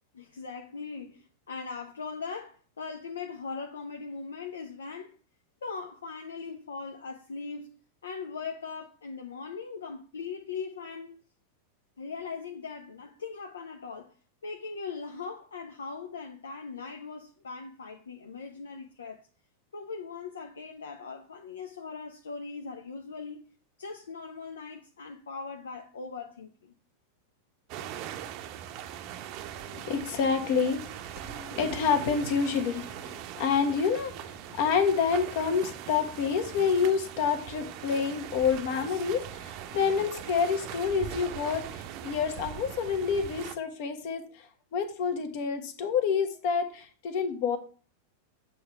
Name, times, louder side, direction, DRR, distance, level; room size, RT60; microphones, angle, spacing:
voice 1, 0.1-5.2 5.6-7.7 8.0-11.2 12.0-14.1 14.4-19.3 19.7-23.4 23.8-26.7, left 5 dB, 70° left, 0.6 m, -40 dB
sound 1, 27.7-43.6, right 10 dB, 40° right, 0.7 m, -41 dB
voice 2, 29.6-47.6, left 6 dB, 50° left, 1.1 m, -28 dB
8.0 x 3.3 x 5.8 m
figure-of-eight pair, 90°, 0 cm